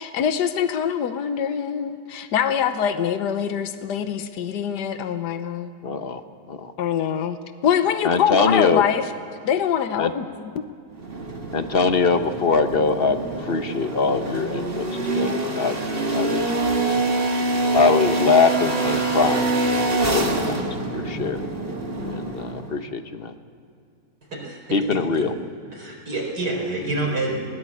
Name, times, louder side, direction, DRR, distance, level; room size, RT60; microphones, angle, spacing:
voice 1, 0.0-5.7 6.8-7.4 7.6-9.1 9.4-10.6, left 8 dB, 80° left, 10 dB, 1.5 m, -24 dB
voice 2, 5.8-6.2 6.5-6.7 8.0-8.8 10.0-10.1 11.5-15.8 16.1-16.5 17.7-19.6 19.9-21.4 22.0-23.3 24.7-25.3, left 4 dB, 40° left, 9 dB, 1.1 m, -23 dB
sound 1, 10.9-22.8, right 2 dB, 35° right, 2.0 m, -25 dB
voice 3, 24.3-25.3 25.7-27.5, right 2 dB, 80° right, 0 dB, 5.1 m, -28 dB
20.0 x 18.5 x 8.5 m, 2.4 s
omnidirectional pair, 1.8 m